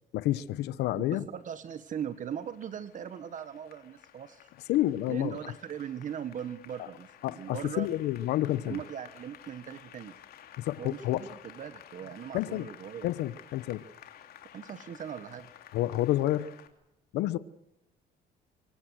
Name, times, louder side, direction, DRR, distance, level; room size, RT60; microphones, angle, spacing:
voice 1, 0.1-1.2 4.7-5.4 7.2-8.8 10.6-11.2 12.3-12.7 13.0-13.8 15.7-16.5 17.1-17.4, left 14 dB, 85° left, 1.1 m, -29 dB
voice 2, 0.9-4.5 5.1-7.9 8.7-10.1 10.8-13.1 14.5-15.5, right 9 dB, 50° right, 1.4 m, -39 dB
Applause, 1.4-16.7, left 10 dB, 65° left, 3.1 m, -53 dB
24.5 x 24.0 x 6.4 m
cardioid pair, 110°, 17 cm